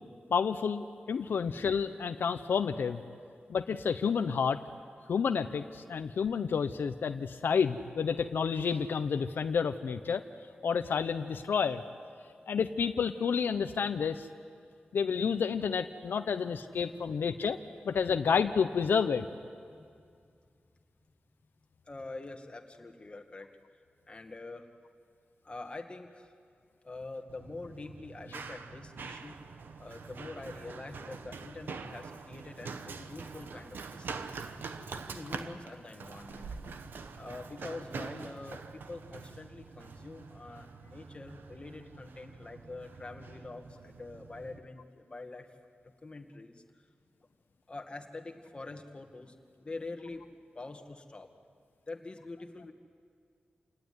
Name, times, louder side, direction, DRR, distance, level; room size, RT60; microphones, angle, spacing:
voice 1, 0.3-3.0 3.5-4.6 5.1-10.2 10.6-11.8 12.5-14.3 14.9-17.6 17.8-19.3, left 6 dB, 90° left, 9 dB, 0.7 m, -30 dB
voice 2, 16.2-17.1 19.6-19.9 21.9-23.5 24.1-24.7 25.4-26.3 26.8-29.4 29.8-34.4 35.0-36.5 37.2-45.5 45.8-46.6 47.7-50.3 50.5-51.3 51.9-52.7, left 3 dB, 30° left, 4 dB, 1.9 m, -45 dB
Run, 27.3-44.6, right 4 dB, 85° right, 1.1 m, -45 dB
28.0 x 18.5 x 9.6 m, 2.3 s
wide cardioid pair, 105°, 3 cm